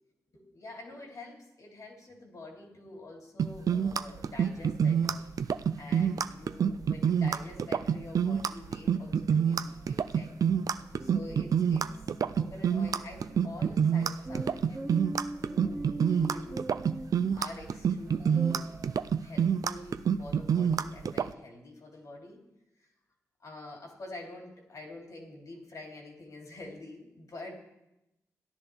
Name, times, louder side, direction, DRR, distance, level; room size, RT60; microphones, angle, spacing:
voice 1, 0.3-10.3 10.9-11.9 12.4-15.0 15.8-16.6 17.3-18.7 19.2-22.4 22.8-22.9 23.4-27.6, left 2 dB, 65° left, 0 dB, 2.9 m, -47 dB
sound 1, 3.4-21.3, right 7 dB, 65° right, 0.4 m, -27 dB
sound 2, 4.2-4.3 4.6-19.0, right 1 dB, 20° right, 1.3 m, -44 dB
14.5 x 10.5 x 3.4 m, 0.89 s
cardioid pair, 60°, 6 cm